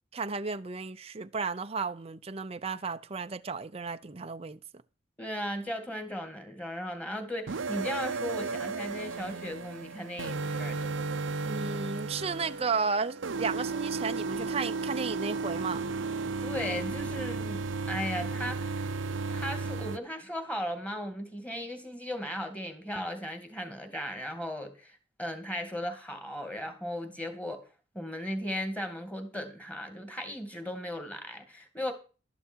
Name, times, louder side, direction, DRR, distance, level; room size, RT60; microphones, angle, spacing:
voice 1, 0.1-4.6 11.4-15.8, right 4 dB, 30° right, 0.5 m, -33 dB
voice 2, 5.2-10.9 16.4-17.6 17.9-27.6 27.9-31.9, left 1 dB, 5° left, 2.3 m, -37 dB
sound 1, 7.5-20.0, right 4 dB, 70° right, 0.7 m, -34 dB
12.5 x 11.0 x 4.6 m
head